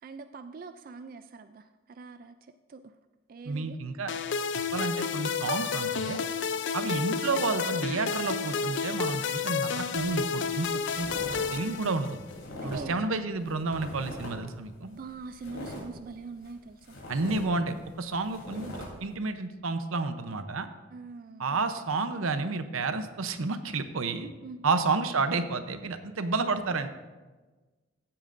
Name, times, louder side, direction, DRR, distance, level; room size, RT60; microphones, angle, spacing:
voice 1, 0.0-3.0 3.3-3.8 12.6-13.3 14.8-17.0 20.9-21.6 24.4-24.7, right 4 dB, 45° right, 10 dB, 0.3 m, -44 dB
voice 2, 3.5-4.1 4.7-6.2 6.7-10.7 11.0-12.2 12.6-14.9 17.1-20.7 21.4-24.3 24.6-26.9, right 3 dB, 90° right, 9 dB, 0.7 m, -30 dB
sound 1, 4.1-12.3, left 6 dB, 60° left, 0.5 m, -31 dB
sound 2, 10.0-10.2 10.5-11.4 11.7-13.0 13.4-14.5 14.9-16.6 16.8-18.9, left 1 dB, 80° left, 3.4 m, -41 dB
15.5 x 8.6 x 2.6 m, 1.2 s
head